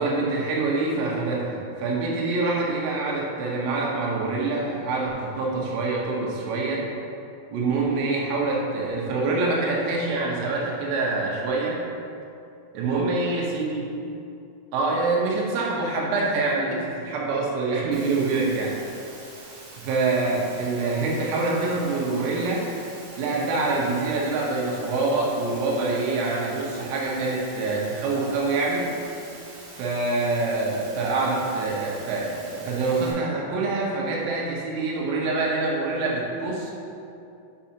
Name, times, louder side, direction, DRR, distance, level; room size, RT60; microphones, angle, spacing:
voice 1, 0.0-6.9 7.5-11.8 12.8-13.9 14.7-18.7 19.8-22.7 23.2-28.9 29.8-36.7, right 3 dB, 85° right, -3 dB, 3.7 m, -25 dB
Water, 17.9-33.1, right 2 dB, 60° right, 2.2 m, -44 dB
8.6 x 6.1 x 2.8 m, 2.6 s
omnidirectional pair, 5.9 m